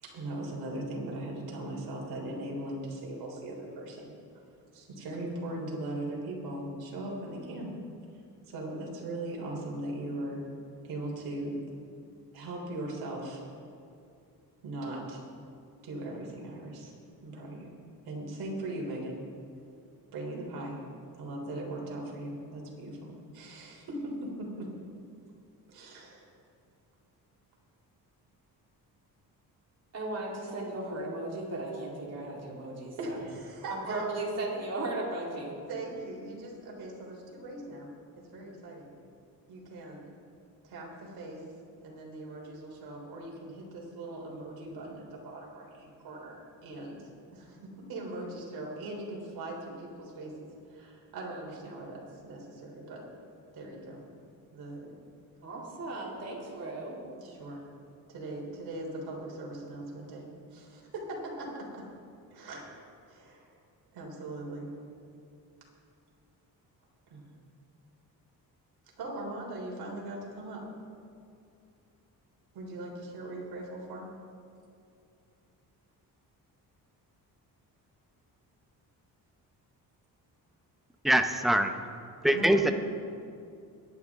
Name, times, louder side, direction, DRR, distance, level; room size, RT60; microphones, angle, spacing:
voice 1, 0.0-4.1 4.7-7.7 8.5-10.4 10.8-11.6 12.3-13.4 14.6-15.2 15.8-16.9 17.2-17.7 18.1-19.2 20.1-20.8 21.2-24.7 25.7-26.3 33.0-34.1 35.7-37.9 38.3-38.9 39.5-40.1 40.6-41.4 41.8-53.1 53.5-54.0 54.5-54.9 57.2-57.6 58.1-61.8 62.3-62.7 63.1-63.5 63.9-64.7 67.1-67.3 69.0-70.6 72.5-74.1 82.3-82.7, right 1 dB, 90° right, -2 dB, 3.6 m, -39 dB
voice 2, 29.9-33.2 33.7-35.6 55.4-57.0, right 2 dB, 45° right, -4 dB, 3.5 m, -36 dB
voice 3, 81.0-81.7 82.2-82.7, right 1 dB, ahead, 6 dB, 0.7 m, -23 dB
23.0 x 10.5 x 3.6 m, 2.4 s
cardioid pair, 140°, 37 cm